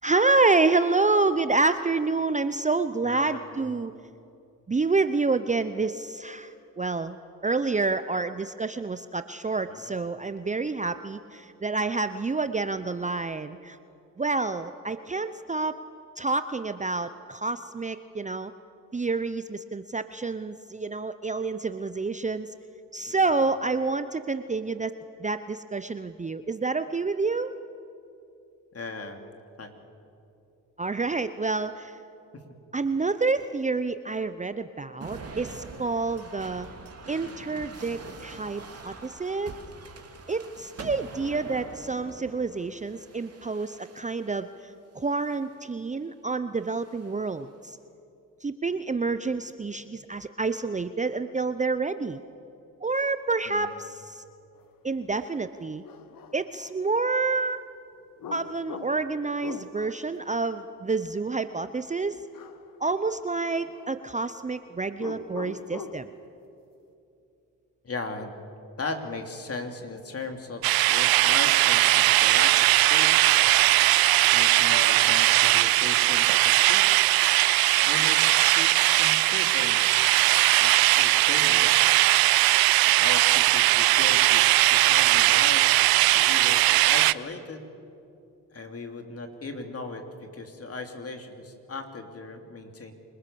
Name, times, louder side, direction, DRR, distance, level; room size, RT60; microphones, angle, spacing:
voice 1, 0.0-3.9 4.7-7.2 7.4-13.8 14.2-15.8 16.2-18.5 18.9-22.5 22.9-27.5 30.8-32.0 32.7-36.7 37.1-39.5 40.3-47.8 48.4-52.2 52.8-54.2 54.8-55.8 56.3-57.6 58.3-62.2 62.8-66.1, right 3 dB, 20° right, 11 dB, 0.7 m, -28 dB
voice 2, 28.7-29.2 29.6-29.7 32.3-32.4 53.5-53.7 67.8-68.3 68.8-73.2 74.3-77.0 77.4-80.1 80.6-81.9 82.8-84.4 84.7-87.6 88.5-92.9, left 3 dB, 40° left, 5 dB, 3.1 m, -37 dB
sound 1, 35.0-44.4 45.1-45.6 46.7-47.4, right 4 dB, 40° right, 2.8 m, -44 dB
sound 2, 55.2-55.3 55.8-57.2 58.2-60.2 62.3-62.8 63.0-64.2 64.9-66.1, left 6 dB, 60° left, 1.6 m, -43 dB
sound 3, 70.6-87.1, right 17 dB, 70° right, 0.6 m, -20 dB
26.5 x 20.5 x 7.0 m, 2.6 s
supercardioid pair, 60°, 37 cm